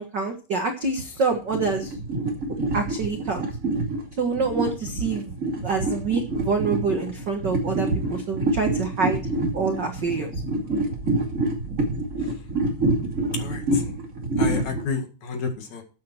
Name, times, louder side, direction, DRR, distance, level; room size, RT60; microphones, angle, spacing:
voice 1, 0.0-1.9 2.7-3.4 4.2-5.3 5.6-9.2 9.5-10.3, right 4 dB, 55° right, 5 dB, 1.2 m, -26 dB
sound 1, 1.3-14.8, right 2 dB, 25° right, 2.2 m, -27 dB
voice 2, 13.3-13.8 14.4-15.8, left 5 dB, 55° left, 5 dB, 2.9 m, -30 dB
13.0 x 8.6 x 4.4 m, 0.34 s
omnidirectional pair, 4.3 m